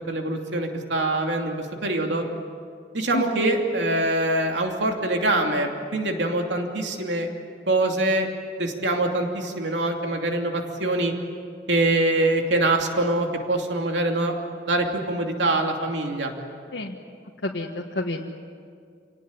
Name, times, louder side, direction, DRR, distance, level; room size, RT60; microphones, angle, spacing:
voice 1, 0.0-2.2 2.9-7.3 7.7-8.3 8.6-11.1 11.7-14.3 14.6-16.3, right 2 dB, 85° right, 2 dB, 2.8 m, -24 dB
voice 2, 17.4-18.2, left 1 dB, 80° left, -1 dB, 1.5 m, -29 dB
28.0 x 18.5 x 9.7 m, 2.2 s
head